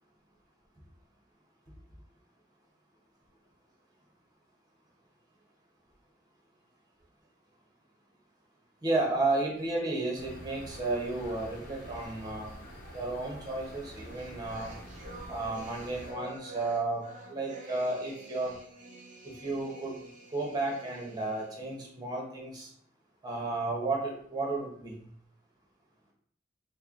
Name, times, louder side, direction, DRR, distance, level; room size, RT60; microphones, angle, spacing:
voice 1, 8.8-12.5 12.9-14.7 15.3-18.5 19.2-20.0 20.3-22.7 23.2-24.9, right 2 dB, 20° right, -2 dB, 1.0 m, -33 dB
sound 1, 10.1-16.1, equal, 55° left, 1.0 m, -47 dB
sound 2, 13.9-21.8, right 2 dB, 45° right, 0.6 m, -48 dB
4.2 x 2.1 x 3.7 m, 0.62 s
head